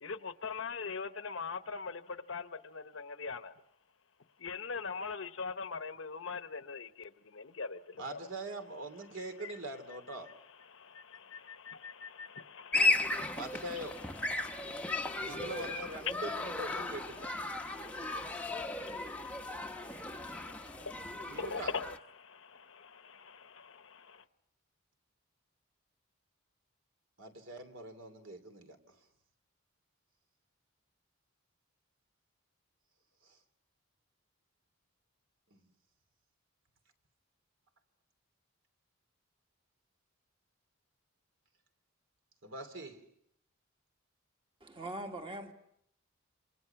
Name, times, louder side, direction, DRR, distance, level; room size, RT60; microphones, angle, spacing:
voice 1, 0.0-3.6 4.4-8.2 10.1-15.5 15.8-16.2 16.7-24.2, left 5 dB, 65° left, 1.0 m, -43 dB
voice 2, 8.0-10.3 13.3-14.0 15.2-17.3 21.2-21.7 27.2-29.0 33.2-33.4 35.5-35.6 42.4-43.0, right 1 dB, 60° right, 3.0 m, -43 dB
sound 1, 12.7-22.0, left 2 dB, 5° left, 0.9 m, -35 dB
voice 3, 44.6-45.5, right 1 dB, 25° right, 1.9 m, -41 dB
28.0 x 26.5 x 5.9 m
head